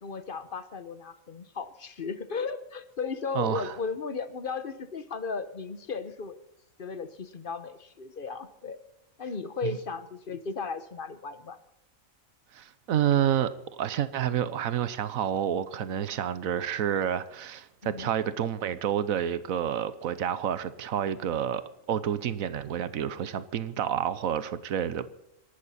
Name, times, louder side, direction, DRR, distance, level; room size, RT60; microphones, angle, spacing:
voice 1, 0.0-6.4 6.8-8.8 9.2-11.6 17.8-18.1, left 5 dB, 45° left, 1.0 m, -35 dB
voice 2, 3.3-3.7 9.6-9.8 12.5-21.6 21.9-25.1, right 9 dB, 90° right, 1.3 m, -29 dB
26.0 x 12.0 x 4.2 m
omnidirectional pair, 1.4 m